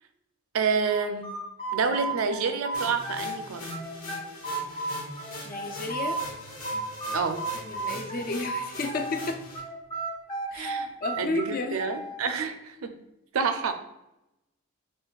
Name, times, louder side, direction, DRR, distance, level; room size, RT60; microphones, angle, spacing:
voice 1, 0.5-1.3 1.7-3.7 7.1-7.5 10.5-10.9 11.2-13.0 13.3-13.7, right 5 dB, 80° right, 8 dB, 0.4 m, -28 dB
sound 1, 0.9-3.4 3.7-6.2 6.6-9.2 9.5-12.2, right 3 dB, 25° left, 0.7 m, -33 dB
sound 2, 2.7-9.6, left 1 dB, 80° left, 1.1 m, -41 dB
voice 2, 5.4-6.2 7.5-9.4 10.5-10.7 11.0-11.8, left 3 dB, 40° left, 6 dB, 0.3 m, -32 dB
6.4 x 2.3 x 2.3 m, 0.88 s
head